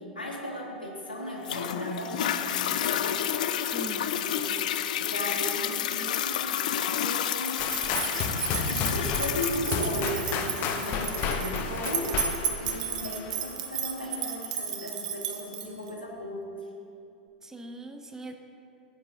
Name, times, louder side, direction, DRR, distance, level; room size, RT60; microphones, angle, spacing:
voice 1, 0.0-3.2 4.1-4.4 5.0-7.7 8.0-16.5, left 1 dB, 85° left, -2 dB, 1.9 m, -36 dB
Toilet flush, 1.4-14.5 15.1-15.2, left 10 dB, 55° left, 0.4 m, -31 dB
voice 2, 3.7-4.1 17.4-18.4, right 2 dB, 10° right, 6 dB, 0.6 m, -40 dB
sound 1, 7.6-13.4, left 6 dB, 40° left, 0.9 m, -32 dB
sound 2, 7.6-15.9, right 8 dB, 50° right, 1.0 m, -34 dB
16.0 x 8.0 x 2.7 m, 2.6 s
figure-of-eight pair, 95°, 5 cm